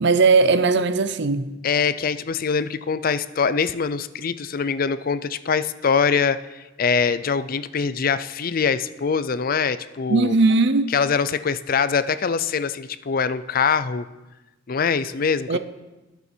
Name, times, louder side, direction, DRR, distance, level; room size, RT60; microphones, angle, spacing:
voice 1, 0.0-1.5 10.1-10.9 15.5-15.6, right 3 dB, 65° right, 0.7 m, -18 dB
voice 2, 1.6-10.3 10.9-14.1 14.7-15.6, left 6 dB, 50° left, 0.5 m, -23 dB
20.5 x 7.0 x 4.5 m
head